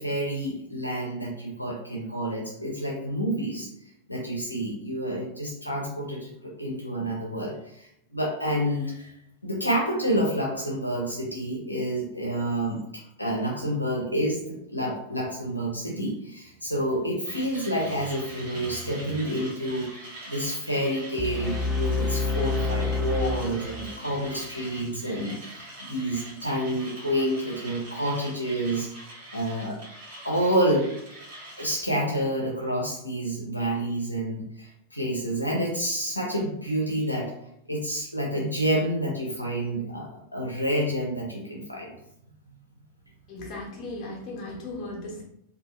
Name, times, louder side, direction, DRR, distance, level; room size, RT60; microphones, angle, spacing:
voice 1, 0.0-3.7 4.1-9.1 9.4-19.9 20.3-28.9 29.3-29.8 30.2-30.9 31.6-37.3 37.7-41.9, right 1 dB, 85° left, -3 dB, 0.6 m, -29 dB
Mechanisms, 17.3-31.8, right 1 dB, 55° right, 1.1 m, -43 dB
sound 1, 21.2-24.2, left 3 dB, ahead, 0.5 m, -28 dB
voice 2, 43.3-45.2, left 2 dB, 35° left, -3 dB, 1.0 m, -36 dB
2.6 x 2.4 x 3.1 m, 0.75 s
figure-of-eight pair, 90°, 0 cm